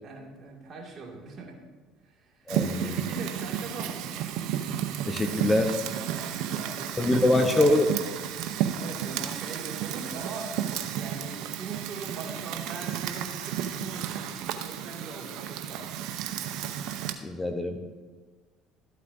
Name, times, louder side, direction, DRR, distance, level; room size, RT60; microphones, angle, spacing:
voice 1, 0.0-1.6 2.0-4.1 5.9-7.7 8.8-10.6 11.0-15.9, right 4 dB, 45° right, -1 dB, 2.3 m, -41 dB
voice 2, 2.5-3.0 5.1-5.8 7.0-7.9 17.2-17.8, left 2 dB, 20° left, 6 dB, 0.9 m, -24 dB
Fire, 2.5-17.1, right 10 dB, 70° right, 0.7 m, -32 dB
13.0 x 8.3 x 2.7 m, 1.4 s
supercardioid pair, 80°, 0 cm